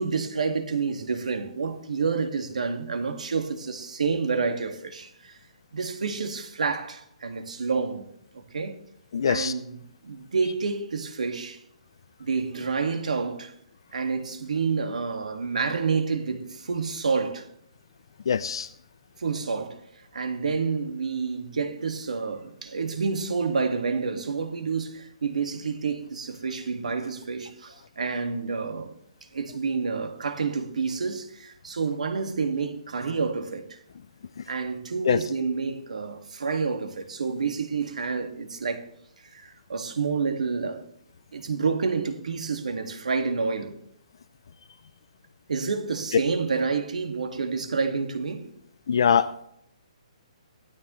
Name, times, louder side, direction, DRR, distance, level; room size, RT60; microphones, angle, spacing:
voice 1, 0.0-5.4 5.7-8.1 8.3-8.8 9.3-11.6 12.2-13.5 13.9-17.5 19.2-19.8 20.1-29.0 29.3-33.8 34.5-38.9 39.3-40.8 41.3-43.8 45.5-48.5, right 5 dB, 90° right, 1.9 m, -29 dB
voice 2, 9.1-9.5 18.3-18.7 35.0-35.2 48.9-49.5, left 7 dB, 40° left, 0.4 m, -23 dB
16.5 x 12.5 x 3.1 m
hypercardioid pair, 180°, 4 cm